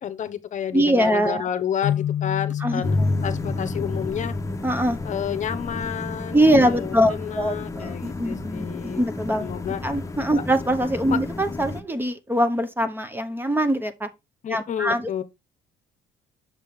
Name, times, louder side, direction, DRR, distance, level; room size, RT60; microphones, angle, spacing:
voice 1, 0.0-3.0 3.2-4.4 5.0-9.0 9.4-9.8 11.1-11.2 14.4-15.2, left 9 dB, 45° left, 0.8 m, -30 dB
voice 2, 0.7-1.5 2.6-3.1 4.6-5.0 6.3-9.5 9.8-14.1 14.5-15.2, equal, 10° right, 0.7 m, -23 dB
sound 1, 1.8-5.3, left 10 dB, 75° left, 0.7 m, -30 dB
sound 2, 2.8-11.8, left 2 dB, 20° left, 0.9 m, -30 dB
6.6 x 5.1 x 3.5 m
cardioid pair, 110°, 17 cm